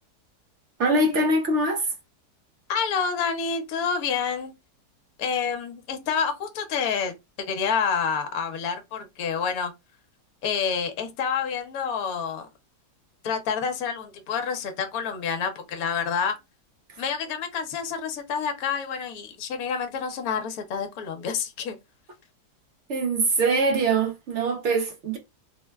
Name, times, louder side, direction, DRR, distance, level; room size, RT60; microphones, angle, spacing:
voice 1, 0.8-1.9 22.9-25.2, right 2 dB, 70° right, 0.7 m, -23 dB
voice 2, 2.7-4.5 5.2-7.1 7.5-9.7 10.4-12.5 13.2-16.4 17.0-21.8, left 6 dB, 70° left, 1.0 m, -28 dB
3.1 x 2.1 x 2.2 m
omnidirectional pair, 1.8 m